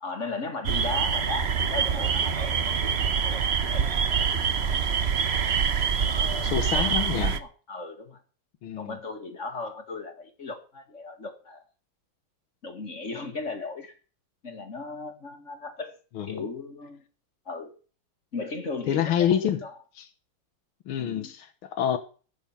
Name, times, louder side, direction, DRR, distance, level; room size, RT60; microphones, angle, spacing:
voice 1, 0.0-3.9 4.2-4.7 6.0-8.2 8.8-11.6 12.6-14.0 14.4-15.9 16.2-17.0 17.5-17.8 18.3-19.8 21.0-21.3, left 3 dB, 40° left, 1.9 m, -37 dB
sound 1, 0.6-7.4, right 6 dB, 50° right, 0.8 m, -25 dB
voice 2, 6.4-7.4 8.6-9.0 16.2-16.4 18.9-19.6 20.0-20.1 20.9-22.0, left 9 dB, 90° left, 2.0 m, -27 dB
14.5 x 7.2 x 7.2 m
omnidirectional pair, 2.2 m